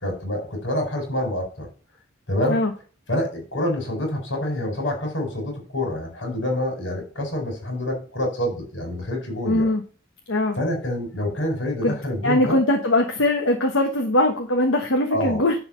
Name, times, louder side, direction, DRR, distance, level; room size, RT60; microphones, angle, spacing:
voice 1, 0.0-1.7 2.3-2.6 3.1-9.7 10.5-12.6 15.1-15.4, left 1 dB, 70° left, 2 dB, 4.3 m, -27 dB
voice 2, 9.5-9.8 10.3-10.6 11.8-11.9 12.2-15.5, left 1 dB, 90° left, 2 dB, 1.3 m, -21 dB
10.5 x 4.4 x 6.4 m, 0.39 s
head